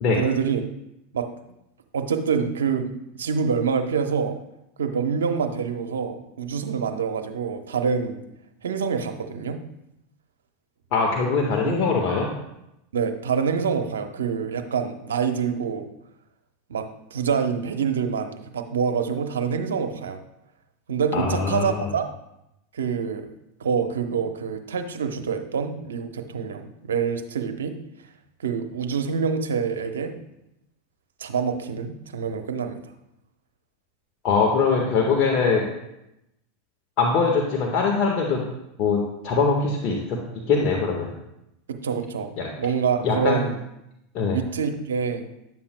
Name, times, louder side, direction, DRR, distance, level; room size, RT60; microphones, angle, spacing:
voice 1, 0.2-0.6 1.1-1.3 1.9-4.4 4.8-8.2 8.6-9.6 11.6-11.8 12.9-15.9 16.7-20.2 20.9-22.1 22.7-23.3 23.6-27.7 28.4-30.2 31.2-32.8 41.7-42.3 42.6-43.6 44.3-45.3, right 6 dB, 85° right, 7 dB, 0.8 m, -26 dB
voice 2, 10.9-12.3 21.1-21.9 34.2-35.7 37.0-38.4 38.8-40.2 40.5-41.1 42.4-42.5 43.0-43.5 44.1-44.4, left 4 dB, 50° left, -1 dB, 1.4 m, -22 dB
11.0 x 7.3 x 2.2 m, 0.86 s
hypercardioid pair, 95°, 0 cm